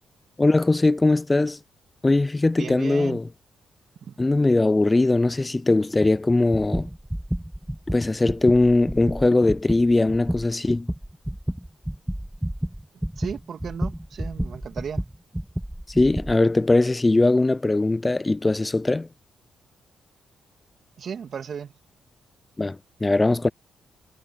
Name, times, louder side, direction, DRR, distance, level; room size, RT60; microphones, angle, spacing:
voice 1, 0.4-1.6 2.0-3.3 4.2-6.9 7.9-10.9 16.0-19.1 22.6-23.5, left 2 dB, 25° left, 0.6 m, -20 dB
voice 2, 2.6-3.2 4.0-4.1 13.2-15.0 21.0-21.7, right 7 dB, 60° right, 2.4 m, -35 dB
sound 1, 6.5-16.4, right 1 dB, 5° right, 2.1 m, -30 dB
hypercardioid pair, 45°, 0 cm